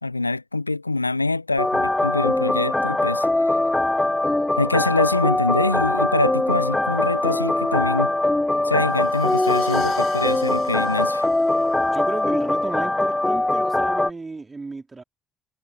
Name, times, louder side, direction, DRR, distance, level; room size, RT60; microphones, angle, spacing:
voice 1, 0.0-3.5 4.6-8.1 8.6-11.3, left 3 dB, 90° left, 0.5 m, -24 dB
sound 1, 1.6-14.1, left 2 dB, 15° left, 0.7 m, -22 dB
Crash cymbal, 8.8-12.6, left 11 dB, 55° left, 7.2 m, -44 dB
voice 2, 11.8-15.0, right 3 dB, 25° right, 3.9 m, -34 dB
figure-of-eight pair, 45°, 0 cm